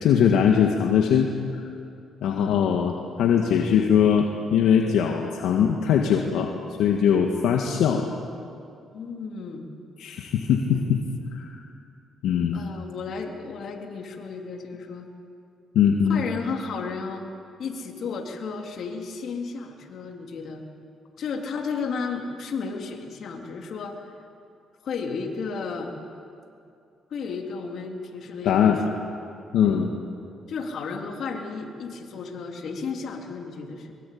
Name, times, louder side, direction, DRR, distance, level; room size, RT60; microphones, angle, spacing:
voice 1, 0.0-1.6 2.2-6.5 6.8-8.0 10.0-11.0 11.3-11.5 12.2-12.6 15.8-16.2 28.4-28.8 29.5-29.9, left 8 dB, 85° left, 2 dB, 1.8 m, -21 dB
voice 2, 2.2-2.6 8.9-9.7 10.7-10.9 12.5-15.1 16.1-17.3 17.6-20.6 21.2-24.1 24.8-26.0 27.1-28.8 29.6-29.8 30.5-33.9, left 5 dB, 65° left, 2 dB, 3.6 m, -33 dB
24.0 x 22.5 x 8.7 m, 2.5 s
cardioid pair, 90°, 0 cm